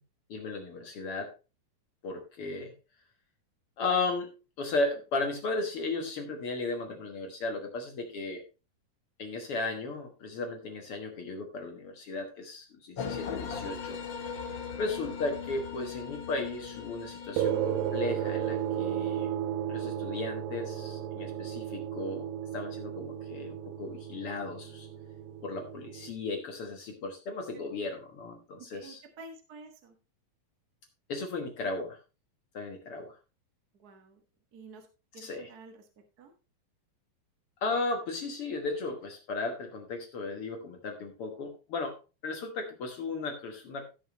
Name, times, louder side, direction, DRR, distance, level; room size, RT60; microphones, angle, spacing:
voice 1, 0.3-1.3 2.0-2.7 3.8-8.4 9.2-14.0 14.8-19.3 19.7-24.9 25.4-29.0 31.1-32.0 32.5-33.2 35.2-35.5 37.6-42.0 42.2-43.9, left 3 dB, 60° left, 4 dB, 1.5 m, -35 dB
sound 1, 13.0-19.0, left 6 dB, 80° left, 1.0 m, -39 dB
sound 2, 17.4-26.1, right 10 dB, 75° right, 2.2 m, -34 dB
voice 2, 28.7-29.9 33.8-34.2 34.5-34.9 35.1-35.8 36.2-36.3, right 3 dB, 45° right, 4 dB, 1.2 m, -49 dB
16.0 x 6.2 x 3.0 m, 0.30 s
omnidirectional pair, 4.3 m